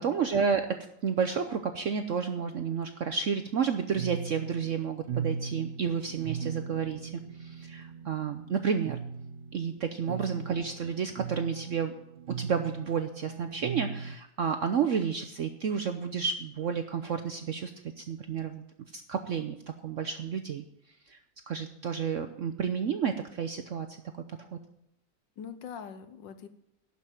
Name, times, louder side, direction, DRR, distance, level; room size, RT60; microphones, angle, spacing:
voice 1, 0.0-9.0 9.5-11.9 12.4-17.7 18.0-18.6 18.9-19.6 19.8-20.6 21.1-21.2 21.5-23.9 24.4-24.5, right 6 dB, 60° right, 7 dB, 0.8 m, -31 dB
sound 1, 4.0-14.2, right 6 dB, 80° right, 0.5 m, -39 dB
voice 2, 10.1-10.4 25.4-26.5, left 7 dB, 75° left, 11 dB, 1.6 m, -44 dB
12.0 x 5.8 x 9.0 m, 0.79 s
omnidirectional pair, 2.0 m